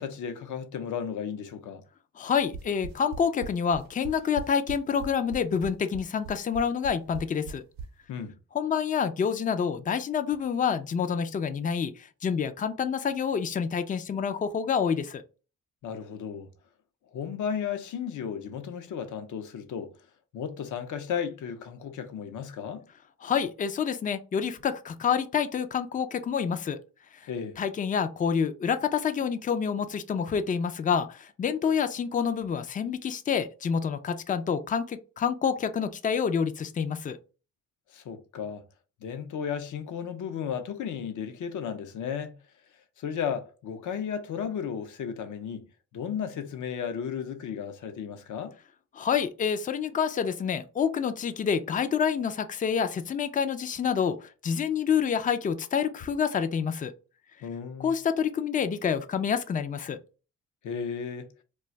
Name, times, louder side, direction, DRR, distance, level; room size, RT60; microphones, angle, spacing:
voice 1, 0.0-1.8 8.1-8.3 15.8-16.5 17.1-19.9 20.3-22.8 27.3-27.6 37.9-38.6 39.0-42.3 43.0-45.6 45.9-48.5 57.4-57.9 60.6-61.3, left 7 dB, 65° left, 0.6 m, -34 dB
voice 2, 2.2-7.6 8.5-15.2 23.2-26.8 27.6-37.2 49.0-56.9 57.8-60.0, left 7 dB, 25° left, 0.4 m, -28 dB
sound 1, 2.4-7.9, right 6 dB, 90° right, 0.6 m, -39 dB
2.4 x 2.3 x 3.9 m
cardioid pair, 85°, 33 cm